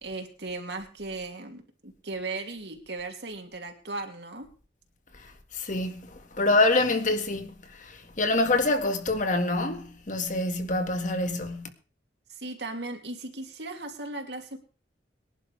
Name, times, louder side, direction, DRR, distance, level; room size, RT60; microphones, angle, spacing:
voice 1, 0.0-4.5 12.3-14.6, right 2 dB, 70° right, 2.9 m, -37 dB
voice 2, 5.2-11.7, left 2 dB, 45° left, 1.9 m, -26 dB
23.5 x 11.0 x 3.4 m
head